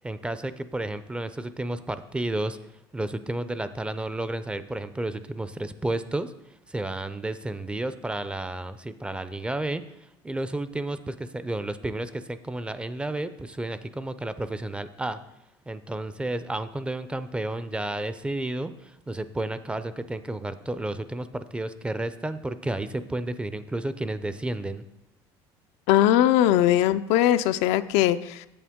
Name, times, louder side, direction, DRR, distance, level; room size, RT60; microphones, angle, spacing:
voice 1, 0.0-2.6 2.9-6.3 6.7-9.8 10.2-15.2 15.7-24.8, right 2 dB, 10° right, 12 dB, 0.4 m, -31 dB
voice 2, 25.9-28.5, left 12 dB, 75° left, 12 dB, 0.4 m, -20 dB
8.5 x 6.9 x 3.6 m, 0.87 s
supercardioid pair, 110°, 11 cm